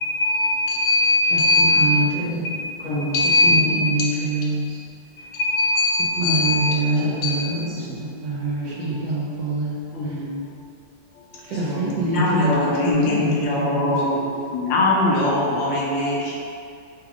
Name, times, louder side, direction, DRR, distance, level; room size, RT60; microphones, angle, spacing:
voice 1, 0.0-1.9 3.1-3.9 5.3-6.9 7.2-7.4 11.1-11.6 12.0-14.2 14.5-16.3, left 2 dB, 75° left, -4 dB, 1.3 m, -21 dB
voice 2, 1.3-2.6 3.4-4.8 5.2-5.3 6.2-9.7 11.4-13.9, right 2 dB, 70° right, -5 dB, 1.2 m, -25 dB
voice 3, 2.5-3.1 3.4-3.8 7.0-7.4 7.8-8.1 8.6-9.0 9.9-10.4 11.6-12.3 13.0-14.3, equal, 50° left, -13 dB, 0.9 m, -31 dB
3.5 x 2.3 x 3.5 m, 2.3 s
omnidirectional pair, 2.1 m